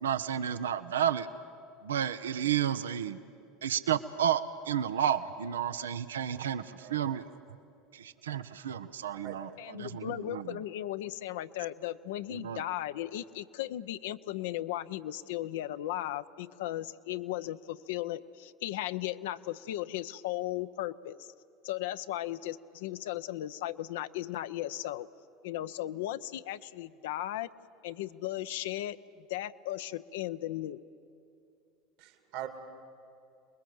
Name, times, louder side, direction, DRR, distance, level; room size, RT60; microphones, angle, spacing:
voice 1, 0.0-1.3 1.8-3.2 3.6-7.2 7.9-10.6 12.3-12.6, right 9 dB, 80° right, 12 dB, 0.7 m, -32 dB
voice 2, 6.8-7.1 9.0-9.4 32.0-32.5, right 13 dB, 65° right, 7 dB, 2.2 m, -42 dB
voice 3, 9.6-21.3 21.6-25.1 25.4-27.5 27.8-29.0 29.3-30.8, left 14 dB, 70° left, 12 dB, 0.6 m, -36 dB
28.5 x 21.0 x 7.8 m, 2.7 s
hypercardioid pair, 75°, 0 cm